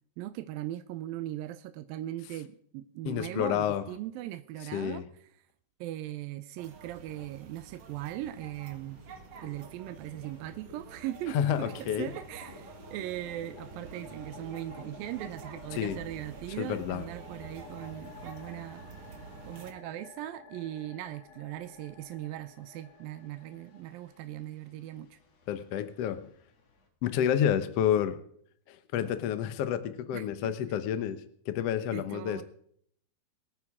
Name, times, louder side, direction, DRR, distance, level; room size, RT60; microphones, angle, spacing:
voice 1, 0.2-5.1 5.8-9.0 9.4-18.9 19.2-25.2 30.1-30.6 31.9-32.4, right 14 dB, 80° right, 10 dB, 2.3 m, -39 dB
voice 2, 3.0-3.8 4.7-5.0 11.3-12.1 15.7-16.0 16.6-17.0 25.5-26.2 27.0-28.2 28.7-32.4, left 9 dB, 80° left, 10 dB, 1.4 m, -29 dB
Japanese Building Closing Shutters, 6.6-19.7, right 5 dB, 60° right, 1.4 m, -49 dB
sound 1, 7.7-8.5 8.8-26.9, left 4 dB, 50° left, 2.8 m, -52 dB
24.5 x 9.5 x 3.6 m, 0.65 s
omnidirectional pair, 4.3 m